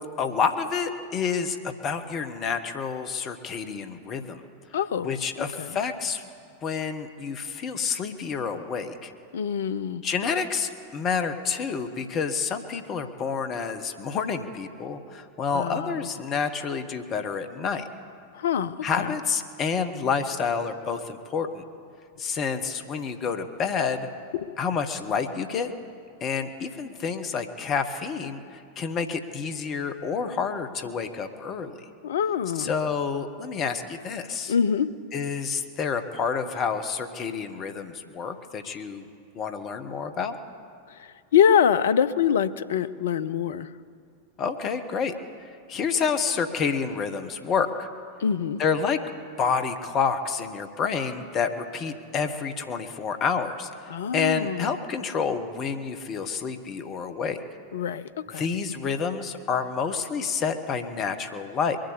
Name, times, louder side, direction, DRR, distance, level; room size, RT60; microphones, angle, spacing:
voice 1, 0.2-4.4 5.0-6.2 6.6-9.1 10.0-17.9 18.8-21.6 22.2-24.1 24.6-25.7 26.2-31.8 32.6-34.5 35.1-39.0 39.3-40.4 44.4-45.1 45.7-47.9 48.6-49.0 49.4-57.4 58.3-61.8, left 6 dB, 30° left, 8 dB, 1.1 m, -29 dB
voice 2, 4.7-5.7 9.3-10.0 15.5-16.1 18.3-19.2 24.3-24.6 32.0-32.7 34.5-34.9 41.0-43.7 48.2-48.6 53.9-54.7 57.7-58.5, left 8 dB, 60° left, 15 dB, 0.5 m, -25 dB
22.0 x 7.8 x 8.2 m, 2.3 s
figure-of-eight pair, 90°, 0 cm